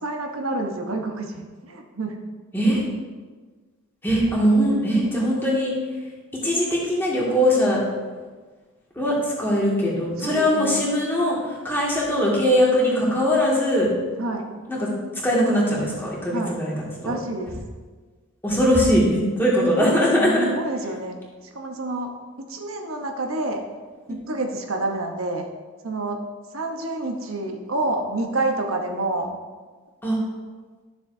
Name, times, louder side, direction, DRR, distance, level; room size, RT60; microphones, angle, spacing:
voice 1, 0.0-2.2 10.2-10.8 14.2-14.5 16.3-16.5 17.0-17.5 20.1-21.1 21.5-22.1 22.4-23.6 24.1-25.5 25.8-26.2 26.5-29.4, right 2 dB, 80° right, 3 dB, 1.0 m, -28 dB
voice 2, 4.0-5.7 6.4-7.8 9.0-13.9 14.7-14.9 15.2-16.7 17.0-17.1 18.4-20.5 30.0-30.2, equal, 10° left, -6 dB, 2.0 m, -21 dB
12.5 x 7.1 x 2.7 m, 1.4 s
head